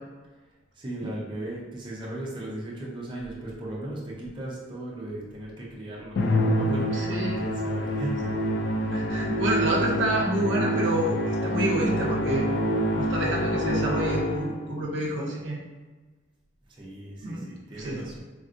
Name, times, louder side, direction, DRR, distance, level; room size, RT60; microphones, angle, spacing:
voice 1, 0.7-8.5 16.7-18.2, right 1 dB, 25° right, -5 dB, 0.5 m, -37 dB
Musical instrument, 6.2-14.7, equal, 60° left, 0.3 m, -26 dB
voice 2, 6.9-7.4 8.9-12.5 13.0-15.6 17.2-17.4 17.8-18.0, right 1 dB, 75° right, -2 dB, 0.6 m, -28 dB
3.5 x 2.2 x 2.5 m, 1.3 s
head